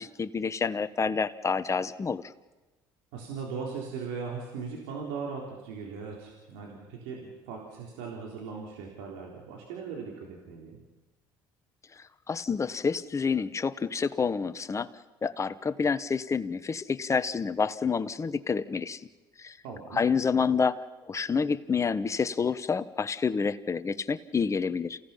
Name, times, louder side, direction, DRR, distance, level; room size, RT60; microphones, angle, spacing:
voice 1, 0.0-2.2 12.0-14.9 15.2-19.0 19.4-19.6 19.9-25.0, left 5 dB, 30° left, 12 dB, 1.2 m, -28 dB
voice 2, 3.1-10.8 19.6-20.0, right 5 dB, 85° right, -1 dB, 3.8 m, -39 dB
28.5 x 17.0 x 5.8 m, 1.1 s
supercardioid pair, 80°, 10 cm